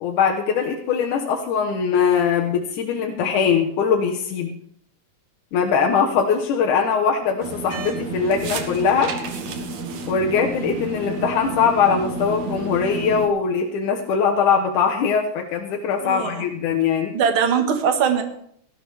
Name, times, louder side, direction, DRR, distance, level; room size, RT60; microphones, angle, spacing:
voice 1, 0.0-4.5 5.5-9.1 10.1-17.1, left 6 dB, 75° left, 1 dB, 2.6 m, -21 dB
sound 1, 7.4-13.3, right 3 dB, 65° right, 2.7 m, -30 dB
voice 2, 16.0-16.4 17.1-18.2, right 7 dB, 45° right, 5 dB, 2.0 m, -21 dB
17.5 x 14.0 x 3.4 m, 0.66 s
omnidirectional pair, 3.8 m